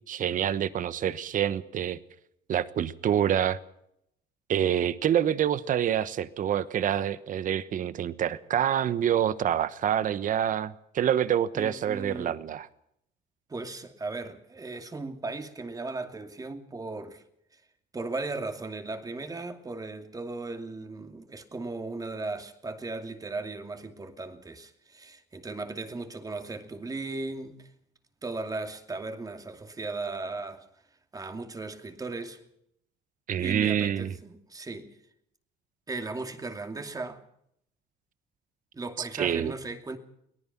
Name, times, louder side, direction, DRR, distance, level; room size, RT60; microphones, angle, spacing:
voice 1, 0.0-2.0 2.5-3.6 4.5-12.7 33.3-34.1 39.0-39.5, right 10 dB, 50° right, 1.2 m, -27 dB
voice 2, 11.5-12.4 13.5-17.2 17.5-17.6 17.9-27.7 28.2-30.6 31.1-32.4 33.3-35.0 35.9-37.2 38.7-40.0, right 3 dB, 20° right, 2.6 m, -37 dB
23.5 x 18.0 x 6.0 m
cardioid pair, 110°, 17 cm